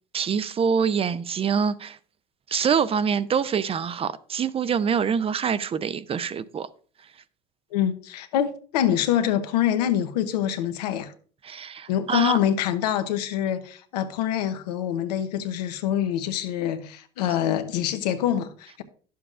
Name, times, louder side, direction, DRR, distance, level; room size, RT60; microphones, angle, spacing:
voice 1, 0.1-2.0 2.5-6.7 11.4-12.4, right 7 dB, 30° right, 0.5 m, -25 dB
voice 2, 7.7-11.1 11.9-18.8, left 10 dB, 90° left, 0.8 m, -25 dB
11.0 x 7.0 x 2.4 m
supercardioid pair, 90°, 20 cm